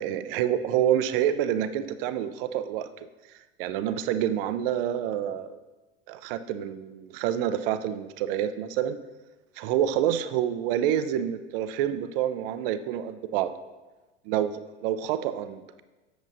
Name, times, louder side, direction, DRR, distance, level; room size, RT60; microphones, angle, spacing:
voice 1, 0.0-2.9 3.6-5.6 6.1-9.0 9.6-13.5 14.3-15.8, right 10 dB, 55° right, 11 dB, 0.5 m, -27 dB
7.7 x 7.0 x 2.7 m, 1.2 s
figure-of-eight pair, 80°, 35 cm